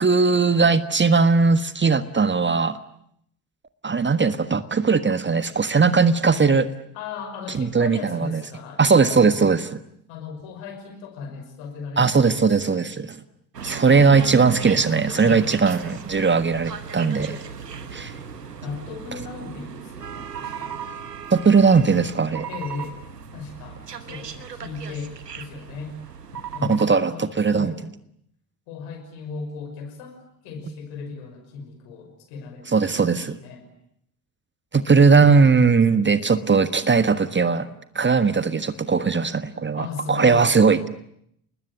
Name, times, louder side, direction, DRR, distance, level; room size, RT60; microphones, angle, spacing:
voice 1, 0.0-2.8 3.8-6.7 7.5-8.4 8.8-9.6 12.0-13.2 13.6-17.4 17.9-18.1 21.3-22.5 26.7-27.7 32.7-33.4 34.7-37.7 37.9-40.9, right 5 dB, 25° right, 13 dB, 1.5 m, -19 dB
voice 2, 6.9-9.6 10.1-12.9 15.1-15.6 18.6-20.7 22.5-23.0 23.3-26.0 26.5-27.8 28.7-33.7 34.8-35.4 39.8-40.5, left 5 dB, 65° left, 6 dB, 5.9 m, -36 dB
sound 1, 13.5-26.8, right 7 dB, 85° right, 1.3 m, -36 dB
29.0 x 20.5 x 9.6 m, 0.72 s
figure-of-eight pair, 50°, 47 cm